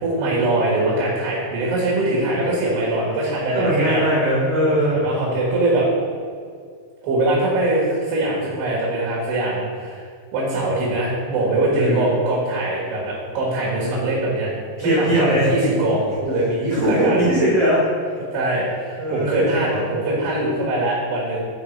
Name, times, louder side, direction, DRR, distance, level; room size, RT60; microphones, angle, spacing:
voice 1, 0.0-4.0 4.7-5.9 7.0-10.0 10.3-14.5 14.8-17.2 18.3-21.4, right 2 dB, 70° right, -7 dB, 3.9 m, -22 dB
voice 2, 3.5-5.0 11.7-12.1 14.8-15.5 16.7-17.8 19.0-19.8, right 1 dB, 40° right, -8 dB, 2.7 m, -20 dB
9.3 x 5.4 x 4.8 m, 2.2 s
omnidirectional pair, 5.2 m